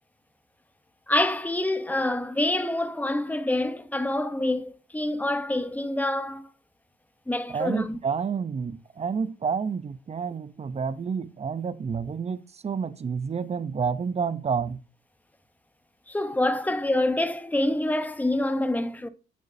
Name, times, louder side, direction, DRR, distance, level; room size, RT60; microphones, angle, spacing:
voice 1, 1.1-6.5 7.3-8.0 16.1-19.1, left 1 dB, 10° left, 1.0 m, -26 dB
voice 2, 7.5-14.8, right 6 dB, 30° right, 0.8 m, -29 dB
8.7 x 7.8 x 2.8 m
cardioid pair, 90°, 20 cm